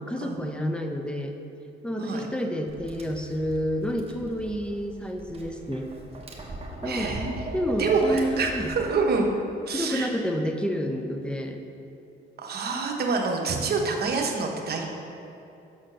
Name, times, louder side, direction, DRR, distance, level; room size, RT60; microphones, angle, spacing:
voice 1, 0.0-1.3 1.8-5.9 6.8-7.2 7.5-8.7 9.7-11.6, equal, 5° left, 4 dB, 0.6 m, -29 dB
Tap, 2.7-8.9, right 2 dB, 30° right, 1.1 m, -38 dB
voice 2, 6.8-7.3 7.8-9.3 9.7-10.1 12.4-14.9, right 4 dB, 55° right, 1 dB, 1.0 m, -26 dB
6.2 x 4.3 x 6.3 m, 2.8 s
cardioid pair, 90°, 20 cm